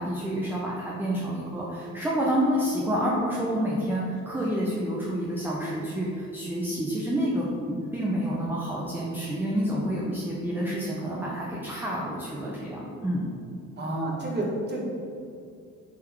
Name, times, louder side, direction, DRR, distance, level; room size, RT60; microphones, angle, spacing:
voice 1, 0.0-13.3, equal, 5° right, -5 dB, 0.5 m, -28 dB
voice 2, 13.8-14.9, right 1 dB, 35° right, -3 dB, 1.0 m, -29 dB
3.5 x 3.5 x 3.0 m, 2.4 s
cardioid pair, 90°, 30 cm